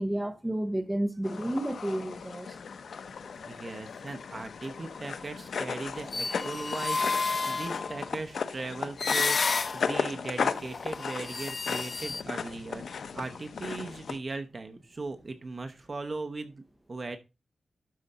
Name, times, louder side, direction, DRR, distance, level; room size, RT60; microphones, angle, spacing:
voice 1, 0.0-2.6, right 1 dB, 10° right, 1.0 m, -31 dB
sound 1, 1.2-14.2, left 6 dB, 80° left, 0.8 m, -36 dB
voice 2, 3.4-16.6 16.9-17.2, right 3 dB, 35° right, 0.9 m, -38 dB
sound 2, 5.9-8.0 9.0-10.1 10.5-12.2, left 4 dB, 40° left, 0.5 m, -31 dB
12.5 x 4.9 x 4.2 m
wide cardioid pair, 165°, 0 cm